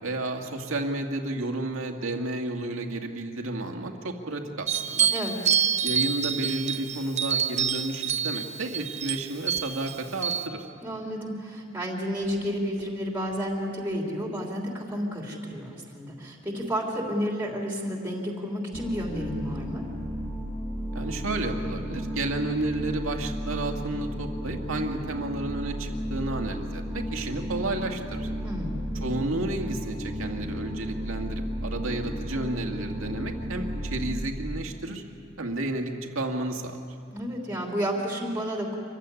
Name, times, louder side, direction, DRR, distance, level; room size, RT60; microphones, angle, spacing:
voice 1, 0.0-5.1 5.8-10.7 20.9-28.3 29.0-35.0 35.4-36.8, right 2 dB, 80° right, 3 dB, 2.1 m, -31 dB
sound 1, 4.7-10.5, right 8 dB, 35° right, 0.8 m, -27 dB
voice 2, 10.8-19.8 28.4-28.9 37.1-38.8, equal, 10° right, 0 dB, 3.2 m, -31 dB
sound 2, 18.7-34.2, equal, 15° left, 4.9 m, -34 dB
25.5 x 15.5 x 9.8 m, 2.4 s
head